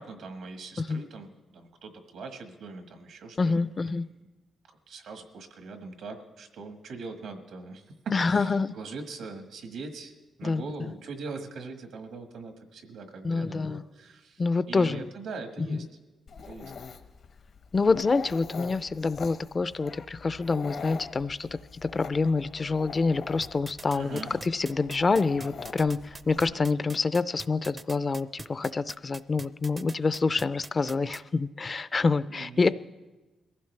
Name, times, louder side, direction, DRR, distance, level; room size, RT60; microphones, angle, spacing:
voice 1, 0.0-3.7 4.7-10.1 10.4-15.8 16.4-16.7 23.9-24.3 32.3-32.7, right 4 dB, 85° right, 5 dB, 1.5 m, -41 dB
voice 2, 3.4-4.1 8.1-8.7 10.4-10.6 13.2-13.8 14.4-15.0 15.6-15.9 17.7-21.5 21.8-32.7, left 4 dB, 35° left, 15 dB, 0.4 m, -27 dB
Dog, 16.3-26.5, left 5 dB, 70° left, 1.1 m, -43 dB
sound 1, 23.4-31.2, right 3 dB, 30° right, 0.5 m, -43 dB
22.0 x 15.0 x 3.3 m, 1.1 s
cardioid pair, 90°, 0 cm